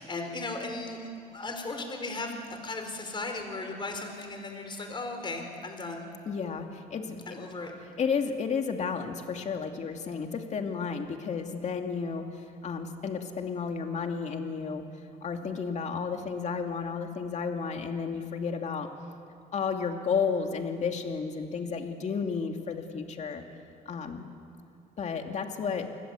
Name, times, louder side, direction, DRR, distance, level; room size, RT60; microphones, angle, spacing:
voice 1, 0.0-2.3 2.6-6.1 7.3-7.7, left 3 dB, 30° left, 5 dB, 4.7 m, -36 dB
voice 2, 6.3-7.2 8.0-12.3 12.6-14.9 15.2-18.9 19.5-23.5 23.9-24.2 25.0-25.9, left 5 dB, 45° left, 4 dB, 2.6 m, -32 dB
28.5 x 20.5 x 8.3 m, 2.5 s
cardioid pair, 110°, 17 cm